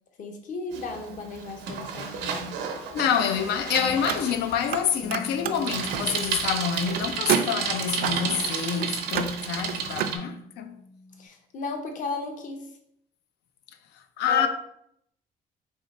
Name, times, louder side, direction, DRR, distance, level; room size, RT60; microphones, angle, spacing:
voice 1, 0.2-2.5 11.2-12.7 14.3-14.5, left 3 dB, 50° left, 0.8 m, -35 dB
Bicycle, 0.7-10.2, right 6 dB, 90° right, 0.7 m, -33 dB
voice 2, 2.9-10.7 13.9-14.5, left 8 dB, 80° left, 0.5 m, -27 dB
Car, 3.9-4.8 5.1-10.2, right 9 dB, 60° right, 0.4 m, -31 dB
Bass guitar, 5.0-11.3, left 2 dB, 5° left, 0.5 m, -46 dB
3.7 x 3.1 x 4.1 m
cardioid pair, 110°, 17 cm